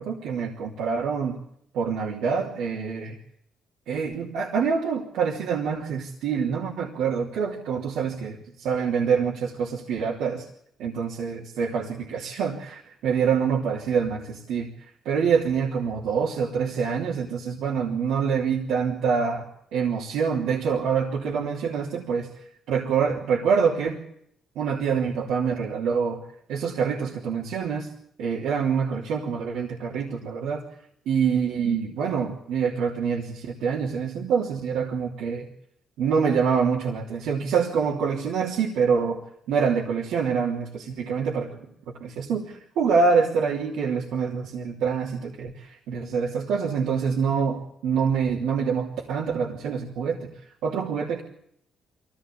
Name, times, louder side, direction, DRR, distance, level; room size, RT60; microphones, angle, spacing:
voice 1, 0.0-1.4 1.7-3.1 3.9-10.4 10.8-14.7 15.0-19.4 19.7-22.3 22.7-24.0 24.5-26.2 26.5-27.9 28.2-30.6 31.1-35.5 36.0-39.2 39.5-41.6 42.0-50.3 50.6-51.2, right 6 dB, 85° right, -2 dB, 3.3 m, -26 dB
23.5 x 16.0 x 8.7 m, 0.72 s
cardioid pair, 90°, 0 cm